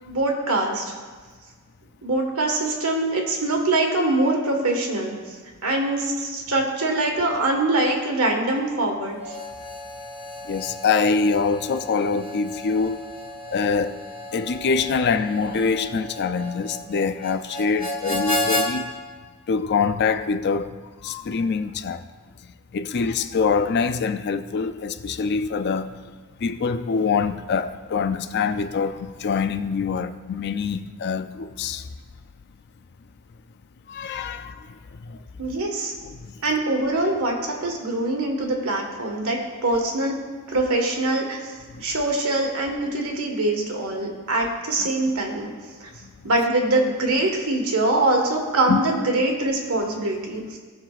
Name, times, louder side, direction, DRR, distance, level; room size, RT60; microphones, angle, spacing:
voice 1, 0.0-0.9 2.0-5.4 5.6-9.3 35.4-35.9 36.4-40.2 40.5-41.5 41.8-45.5 45.8-45.9 46.2-50.6, right 2 dB, 75° right, 1.6 m, -23 dB
Harmonica, 9.2-18.7, left 1 dB, 35° left, 2.2 m, -32 dB
voice 2, 10.4-13.1 13.5-14.0 14.3-18.9 19.5-20.7 21.0-22.0 22.7-25.9 26.4-31.9 33.9-34.7 34.9-35.2 36.0-36.3 41.7-41.8 44.8-44.9 46.0-46.1 48.7-48.8, left 5 dB, 50° left, 0.4 m, -24 dB
16.5 x 5.8 x 2.4 m
head